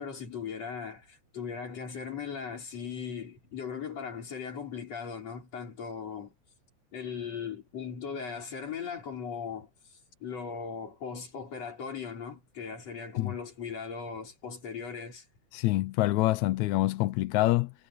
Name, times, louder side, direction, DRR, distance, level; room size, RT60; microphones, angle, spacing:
voice 1, 0.0-6.3 6.9-15.3, left 6 dB, 60° left, 5.9 m, -38 dB
voice 2, 15.5-17.7, left 17 dB, 85° left, 2.0 m, -26 dB
omnidirectional pair, 3.4 m